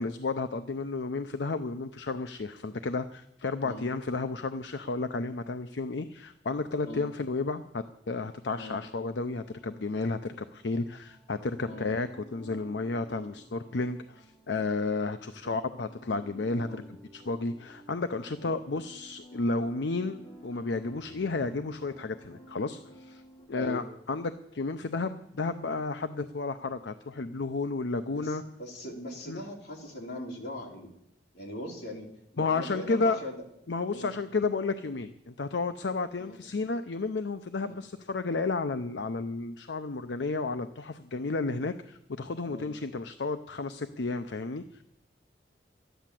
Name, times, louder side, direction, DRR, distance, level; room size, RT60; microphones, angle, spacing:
voice 1, 0.0-23.2 23.5-28.4 29.3-29.4 32.4-33.2 33.7-44.8, left 3 dB, 85° left, 9 dB, 0.7 m, -32 dB
sound 1, 9.3-23.5, right 1 dB, 25° left, 2.9 m, -53 dB
voice 2, 23.5-23.8 28.1-30.9 31.3-32.1 32.3-33.4 33.9-34.1 36.2-36.4 42.5-42.7, left 1 dB, 70° left, -1 dB, 3.5 m, -40 dB
13.0 x 10.5 x 7.6 m, 0.80 s
head